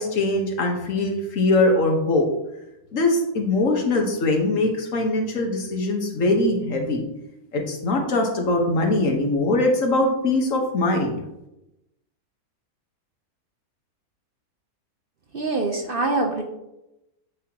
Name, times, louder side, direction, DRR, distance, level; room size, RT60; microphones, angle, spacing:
voice 1, 0.0-2.3 2.9-7.0 7.5-11.2, left 2 dB, 60° left, 2 dB, 1.5 m, -22 dB
voice 2, 15.3-16.4, right 2 dB, 50° right, 3 dB, 0.7 m, -24 dB
8.6 x 5.6 x 2.8 m, 0.91 s
omnidirectional pair, 1.6 m